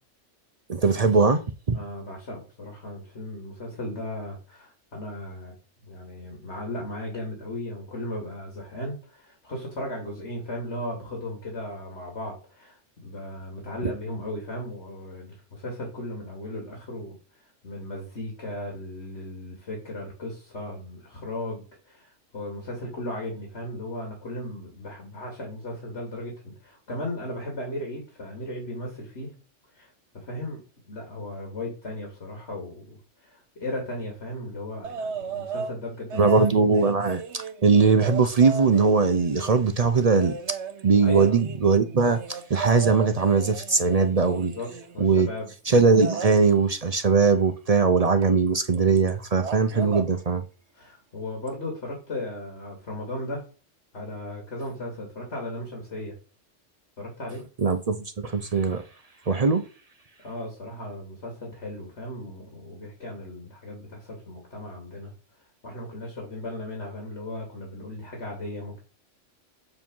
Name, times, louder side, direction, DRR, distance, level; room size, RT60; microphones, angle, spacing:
voice 1, 0.7-1.4 1.7-1.8 36.2-40.3 40.8-44.5 45.0-45.3 45.7-50.4 57.6-58.8 59.3-59.6, right 4 dB, 40° right, 0.6 m, -20 dB
voice 2, 1.7-5.5 5.8-17.1 17.6-29.3 29.7-30.6 30.9-36.5 41.0-41.4 44.4-45.5 50.7-53.4 53.9-56.2 57.0-57.4 60.2-65.1 65.6-68.8, left 1 dB, 65° left, 2.9 m, -36 dB
sound 1, 34.8-35.7 36.1-39.6 40.1-45.0 45.9-46.4 48.2-48.3 48.6-49.1 49.4-50.1 51.5-51.6, right 6 dB, 70° right, 1.1 m, -36 dB
7.8 x 4.9 x 5.4 m
omnidirectional pair, 1.2 m